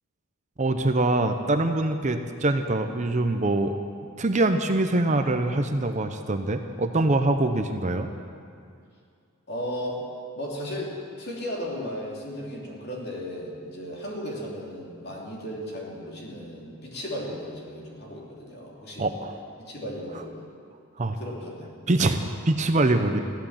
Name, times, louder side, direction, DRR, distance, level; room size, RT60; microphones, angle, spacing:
voice 1, 0.6-3.7 4.2-8.1 19.0-19.4 21.0-21.2 21.9-23.2, right 2 dB, 35° right, 6 dB, 0.7 m, -24 dB
voice 2, 9.5-10.0 10.3-19.1 19.6-20.4 21.0-21.7, equal, 50° left, -3 dB, 2.8 m, -35 dB
15.0 x 11.5 x 7.3 m, 2.3 s
head